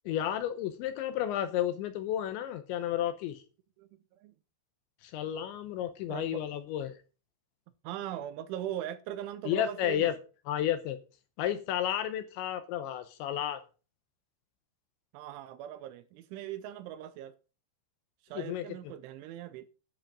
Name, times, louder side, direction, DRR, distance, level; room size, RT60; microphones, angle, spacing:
voice 1, 0.1-3.4 5.0-7.0 9.5-10.1 10.5-11.0 11.4-13.6 18.3-18.6, left 11 dB, 80° left, 2.9 m, -32 dB
voice 2, 6.1-6.4 7.8-10.1 15.1-17.4 18.2-19.7, right 11 dB, 80° right, 3.0 m, -40 dB
10.5 x 7.6 x 6.0 m
omnidirectional pair, 5.8 m